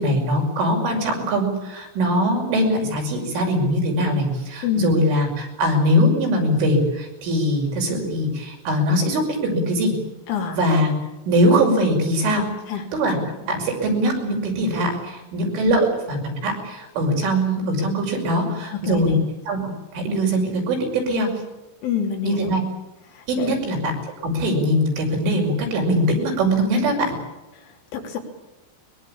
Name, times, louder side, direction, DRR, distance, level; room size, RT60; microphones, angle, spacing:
voice 1, 0.0-9.9 10.5-10.9 11.3-12.4 12.9-13.2 13.5-19.2 19.5-19.6 19.9-21.3 22.2-22.6 23.3-23.9 24.2-27.1, equal, 75° right, 1 dB, 8.3 m, -21 dB
voice 2, 4.6-4.9 10.3-10.6 12.3-12.4 12.7-12.8 15.7-15.8 18.7-19.2 21.8-22.5 23.1-23.5 27.9-28.2, left 7 dB, 75° left, 1 dB, 6.0 m, -26 dB
22.5 x 22.0 x 8.7 m, 1.0 s
omnidirectional pair, 5.6 m